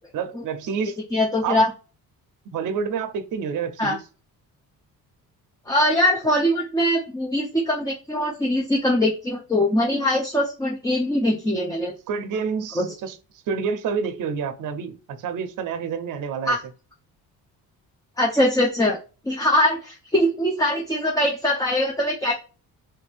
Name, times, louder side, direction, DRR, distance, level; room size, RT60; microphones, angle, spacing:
voice 1, 0.1-1.0 1.4-1.7 2.5-4.0 12.1-13.2 13.5-16.6, right 6 dB, 55° right, 0.6 m, -28 dB
voice 2, 1.1-1.7 3.8-4.0 5.7-11.9 12.8-12.9 16.5-16.6 18.2-19.0 19.3-22.3, left 1 dB, 10° left, 0.5 m, -22 dB
3.3 x 2.6 x 3.3 m
cardioid pair, 130°, 37 cm